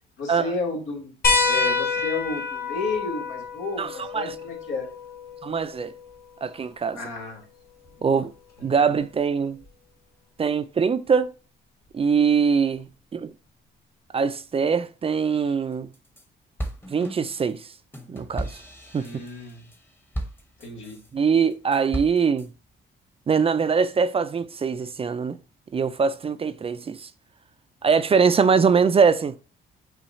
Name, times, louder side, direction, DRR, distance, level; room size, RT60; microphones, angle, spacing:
voice 1, 0.2-1.1 1.5-4.9 6.9-7.4 7.9-8.2 8.7-8.8 18.9-19.6 20.6-21.0, left 3 dB, 85° left, 1.6 m, -32 dB
sound 1, 1.2-6.3 7.9-8.0 9.6-9.7, left 4 dB, 50° left, 1.8 m, -27 dB
voice 2, 5.4-5.9 6.4-7.0 8.0-8.3 8.6-9.6 10.4-11.3 11.9-12.9 13.1-13.3 14.1-15.9 16.9-17.6 18.1-18.6 18.9-19.1 21.1-22.5 23.3-25.4 25.7-27.1 27.8-29.4, right 6 dB, 30° right, 0.4 m, -22 dB
sound 2, 15.7-16.2 16.6-21.1 21.5-22.5, right 1 dB, 10° left, 0.9 m, -35 dB
5.6 x 2.3 x 4.1 m
cardioid pair, 90°, 20 cm